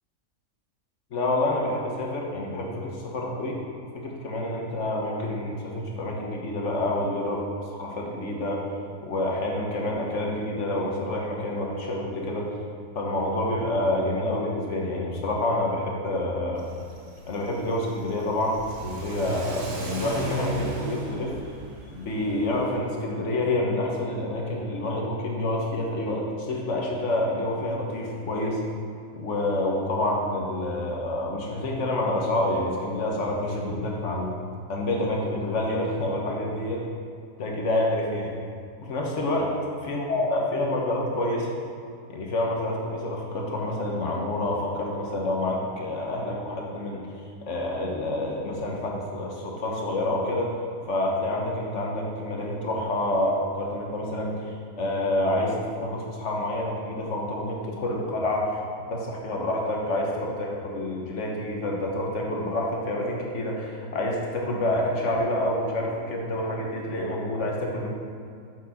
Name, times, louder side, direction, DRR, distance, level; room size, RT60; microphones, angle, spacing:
voice 1, 1.1-3.6 3.9-7.4 7.7-8.6 9.0-12.5 12.9-16.6 17.3-18.5 18.8-21.3 21.9-28.6 29.2-34.3 34.7-36.8 37.4-38.3 38.8-39.5 39.9-41.5 42.1-47.0 47.4-50.5 50.9-58.5 58.9-67.9, left 1 dB, 55° left, -1 dB, 1.3 m, -28 dB
Car / Accelerating revving vroom, 16.6-22.7, right 2 dB, 60° right, 1.2 m, -36 dB
7.1 x 5.9 x 4.1 m, 2.3 s
omnidirectional pair, 1.6 m